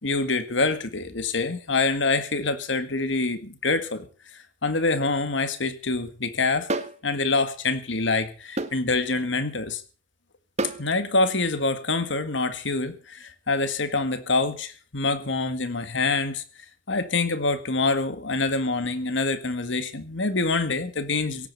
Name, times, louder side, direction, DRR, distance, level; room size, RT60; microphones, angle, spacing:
voice 1, 0.0-4.1 4.3-6.7 7.0-9.8 10.8-16.4 16.9-21.5, left 3 dB, 70° left, 10 dB, 1.9 m, -26 dB
sound 1, 6.7-7.0 8.6-8.8 10.6-10.8, right 2 dB, 35° right, 1.4 m, -27 dB
17.0 x 8.8 x 8.1 m, 0.39 s
head